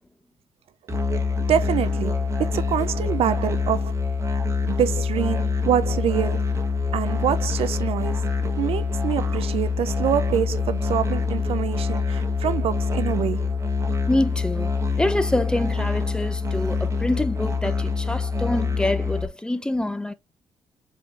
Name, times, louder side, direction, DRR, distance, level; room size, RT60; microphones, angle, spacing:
Musical instrument, 0.9-19.3, left 4 dB, 25° right, 1.0 m, -25 dB
voice 1, 1.5-2.1 2.4-3.9 4.7-6.5 6.9-8.3 8.6-13.5, right 10 dB, 65° right, 0.4 m, -25 dB
voice 2, 14.1-20.1, left 1 dB, 10° left, 0.5 m, -26 dB
4.7 x 3.7 x 2.4 m
cardioid pair, 105°, 10 cm